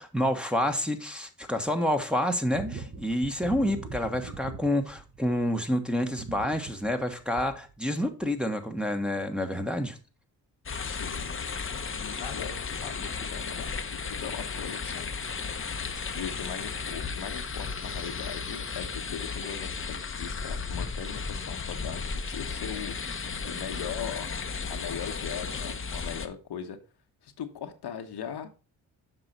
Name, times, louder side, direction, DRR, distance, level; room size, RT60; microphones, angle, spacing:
voice 1, 0.0-10.0, left 1 dB, ahead, 3 dB, 1.3 m, -28 dB
sound 1, 2.5-5.6 6.0-7.7 8.2-8.3, right 3 dB, 35° right, 1.4 m, -40 dB
sound 2, 10.6-26.3, left 5 dB, 30° left, 0.9 m, -34 dB
voice 2, 10.8-11.4 11.9-15.1 16.2-24.3 24.7-26.8 27.2-28.5, left 8 dB, 60° left, 6 dB, 1.2 m, -40 dB
7.7 x 5.5 x 4.2 m, 0.34 s
supercardioid pair, 50°, 44 cm